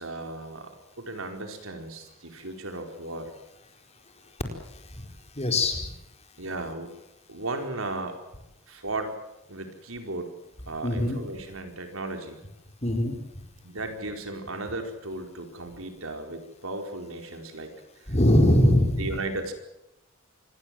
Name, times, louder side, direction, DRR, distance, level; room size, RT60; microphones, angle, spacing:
voice 1, 0.0-3.3 6.4-6.9 7.3-8.2 8.7-9.2 9.5-10.3 10.7-12.4 13.6-17.7 19.0-19.5, right 2 dB, 75° right, 5 dB, 4.7 m, -35 dB
voice 2, 4.7-5.9 10.8-11.2 12.8-13.2 18.1-19.1, left 1 dB, 30° left, 4 dB, 4.5 m, -22 dB
26.5 x 21.0 x 7.8 m, 0.89 s
head